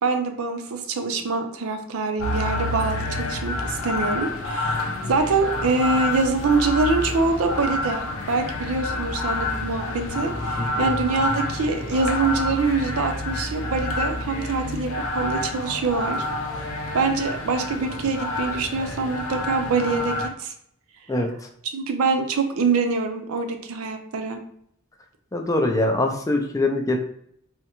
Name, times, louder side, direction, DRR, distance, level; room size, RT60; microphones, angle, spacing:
voice 1, 0.0-9.8 10.1-14.9 15.1-16.2 16.9-20.5 21.7-24.4, right 4 dB, 85° right, 6 dB, 0.5 m, -24 dB
sound 1, 2.2-20.3, left 2 dB, 85° left, 0.5 m, -28 dB
voice 2, 10.6-10.9 21.1-21.3 25.3-27.0, left 2 dB, 15° left, 3 dB, 0.3 m, -23 dB
3.5 x 2.1 x 2.9 m, 0.69 s
head